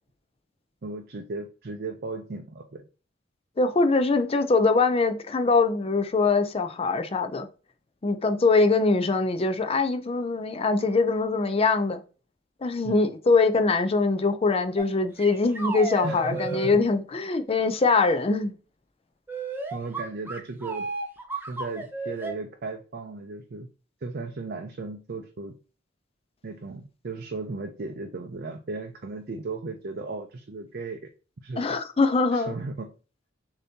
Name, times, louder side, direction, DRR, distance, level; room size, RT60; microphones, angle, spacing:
voice 1, 0.8-2.8 12.8-13.1 16.0-16.7 19.7-20.9 21.5-23.7 24.0-25.5 26.4-31.1 31.4-31.8 32.3-32.9, right 3 dB, 50° right, 0.5 m, -36 dB
voice 2, 3.6-7.5 8.0-12.0 12.6-18.5 31.6-32.5, left 3 dB, 30° left, 0.5 m, -23 dB
sound 1, 14.8-14.9 15.2-16.8 19.3-22.3, right 3 dB, 10° right, 0.7 m, -33 dB
6.8 x 2.8 x 2.7 m
head